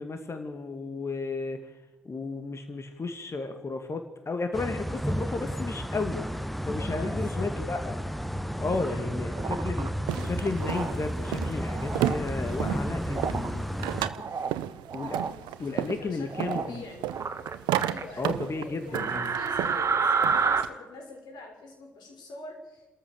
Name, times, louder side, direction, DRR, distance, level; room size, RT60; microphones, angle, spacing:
voice 1, 0.0-1.7 2.0-6.2 6.7-8.0 8.6-14.1 14.9-15.2 15.6-16.8 18.2-19.4, left 3 dB, 30° left, 7 dB, 2.2 m, -33 dB
sound 1, 4.5-14.1, equal, ahead, 1.0 m, -32 dB
voice 2, 6.8-7.5 8.7-9.3 15.3-17.1 17.8-22.9, left 2 dB, 55° left, 2 dB, 6.2 m, -45 dB
sound 2, 9.3-9.9 10.6-10.9 11.7-12.2 13.1-13.5 14.0-14.5 14.9-15.3 16.3-16.7 17.1-18.0 18.9-20.6, right 5 dB, 35° right, 1.9 m, -29 dB
sound 3, 10.1-20.7, right 13 dB, 65° right, 0.7 m, -34 dB
29.5 x 13.5 x 7.1 m, 1.1 s
figure-of-eight pair, 45°, 9 cm